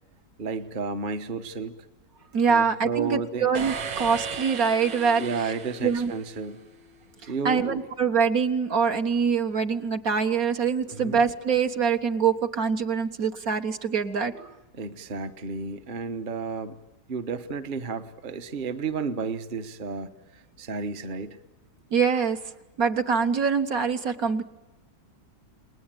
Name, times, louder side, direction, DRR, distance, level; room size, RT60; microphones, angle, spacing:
voice 1, 0.4-1.8 2.5-3.5 5.2-6.6 7.3-7.9 10.9-11.2 14.7-16.8 17.1-21.4, right 5 dB, 35° right, 8 dB, 1.1 m, -32 dB
voice 2, 2.3-5.2 5.8-6.1 7.2-14.5 21.9-22.4 22.8-24.4, right 6 dB, 55° right, 6 dB, 1.8 m, -24 dB
sound 1, 3.5-6.7, right 5 dB, 90° right, 2.2 m, -36 dB
30.0 x 20.0 x 9.1 m, 1.0 s
omnidirectional pair, 1.9 m